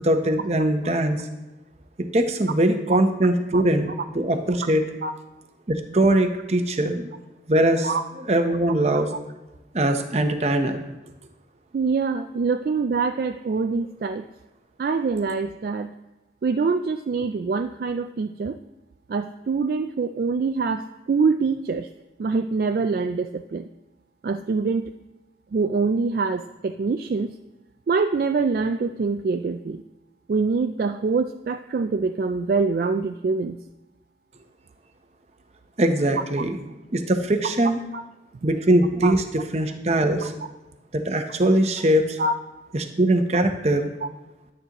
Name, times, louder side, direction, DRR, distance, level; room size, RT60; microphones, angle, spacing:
voice 1, 0.0-1.3 2.0-4.8 5.7-7.1 7.5-7.9 8.3-9.1 9.7-10.8 35.8-36.6 36.9-37.8 38.4-40.3 40.9-42.2 42.7-43.9, right 1 dB, 35° right, 6 dB, 0.8 m, -21 dB
voice 2, 11.7-14.3 14.8-15.9 16.4-18.6 19.1-21.9 22.2-23.7 24.2-24.9 25.5-27.3 27.9-29.8 30.3-33.6 37.9-38.0 39.0-39.1 42.2-42.3, right 4 dB, 55° right, 7 dB, 0.3 m, -24 dB
10.5 x 9.4 x 3.0 m, 1.1 s
head